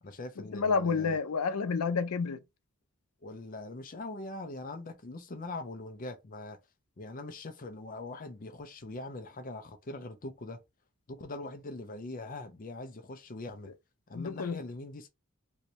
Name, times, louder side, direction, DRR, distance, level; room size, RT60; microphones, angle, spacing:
voice 1, 0.0-1.2 3.2-6.6 7.0-10.6 11.1-13.7 14.1-15.1, left 2 dB, 40° left, 0.5 m, -42 dB
voice 2, 0.5-2.4 14.1-14.6, left 5 dB, 85° left, 0.5 m, -29 dB
3.1 x 2.7 x 3.0 m
head